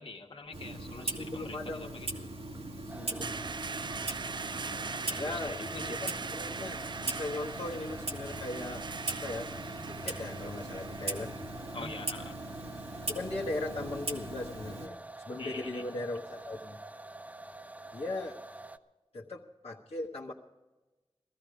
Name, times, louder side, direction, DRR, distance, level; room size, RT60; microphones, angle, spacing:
voice 1, 0.0-2.1 5.1-6.0 11.7-12.4 15.4-15.9, left 3 dB, 60° left, 3 dB, 1.6 m, -45 dB
Clock, 0.5-14.9, right 2 dB, 70° right, 1.6 m, -40 dB
voice 2, 1.0-1.9 2.9-3.5 5.2-5.6 6.0-9.5 10.0-11.4 13.1-15.0 15.2-16.8 17.9-18.4 19.1-20.3, left 2 dB, 75° left, -5 dB, 1.3 m, -38 dB
sound 1, 2.4-14.0, right 4 dB, 45° right, 0.4 m, -42 dB
sound 2, 2.9-18.8, right 2 dB, 15° right, 0.7 m, -47 dB
16.5 x 14.0 x 5.0 m, 1.1 s
wide cardioid pair, 55°, 10 cm